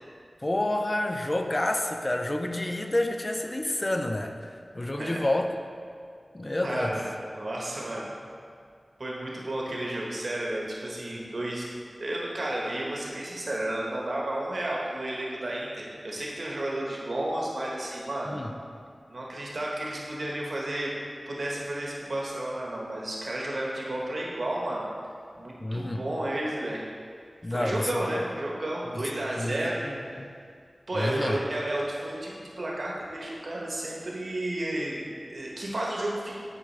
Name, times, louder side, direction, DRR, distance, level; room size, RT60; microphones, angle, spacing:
voice 1, 0.4-5.6 6.3-7.0 18.2-18.5 25.6-26.0 27.4-28.3 28.9-29.1 29.4-30.3 30.9-31.4, left 1 dB, 35° left, 4 dB, 0.6 m, -29 dB
voice 2, 6.6-7.0 7.3-8.3 9.0-11.6 12.0-18.4 19.1-20.9 21.3-24.8 25.4-26.8 27.5-29.8 30.9-36.4, right 1 dB, 70° right, -3 dB, 1.3 m, -32 dB
9.9 x 4.8 x 3.4 m, 2.2 s
cardioid pair, 45°, 0 cm